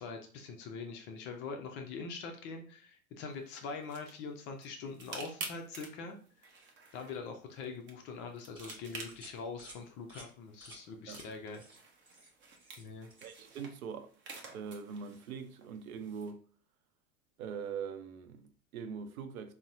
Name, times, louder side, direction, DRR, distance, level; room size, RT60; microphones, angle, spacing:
voice 1, 0.0-6.2 6.9-11.6 12.8-13.1, left 4 dB, 30° left, 0.4 m, -43 dB
sound 1, 3.3-16.3, right 3 dB, 25° right, 0.7 m, -51 dB
sound 2, 8.6-8.8 9.1-9.3 9.6-9.8 10.1-10.3 10.6-10.8 11.1-11.3 11.5-11.8 12.1-12.9 13.1-13.4, right 1 dB, 10° right, 1.1 m, -53 dB
voice 2, 13.2-14.1 14.5-16.4 17.4-19.5, right 6 dB, 75° right, 0.6 m, -42 dB
3.9 x 2.0 x 2.4 m
hypercardioid pair, 100°, 43 cm